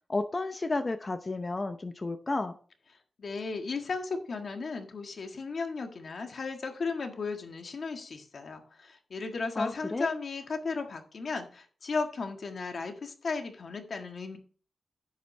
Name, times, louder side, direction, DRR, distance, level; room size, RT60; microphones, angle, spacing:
voice 1, 0.1-2.5 9.6-10.1, left 2 dB, 25° left, 8 dB, 0.7 m, -32 dB
voice 2, 3.2-14.4, left 4 dB, 55° left, 5 dB, 1.6 m, -35 dB
10.0 x 8.1 x 3.2 m, 0.40 s
wide cardioid pair, 150°, 0 cm